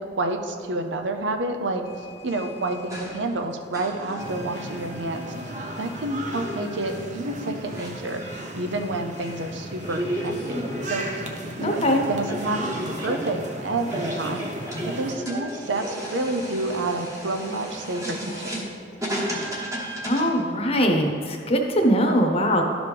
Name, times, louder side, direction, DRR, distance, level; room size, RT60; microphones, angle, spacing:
voice 1, 0.0-1.8 2.2-5.3 5.8-8.2 8.5-11.2 11.6-14.5 15.0-18.6, right 2 dB, 85° right, 5 dB, 0.6 m, -29 dB
sound 1, 1.8-20.4, equal, 20° right, 1.1 m, -35 dB
sound 2, 4.2-15.1, right 1 dB, 40° right, 0.8 m, -35 dB
voice 2, 11.6-12.0 20.0-22.6, equal, 35° left, 3 dB, 0.9 m, -21 dB
12.0 x 5.1 x 3.4 m, 2.5 s
head